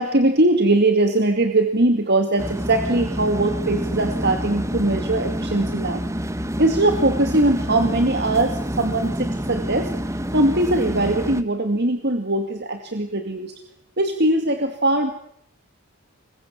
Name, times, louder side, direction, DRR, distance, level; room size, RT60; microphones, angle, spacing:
voice 1, 0.0-6.0 6.6-13.5 14.0-15.1, right 2 dB, 50° right, 6 dB, 2.2 m, -21 dB
sound 1, 2.4-11.4, equal, 15° right, 1.2 m, -27 dB
27.0 x 23.0 x 7.4 m, 0.68 s
head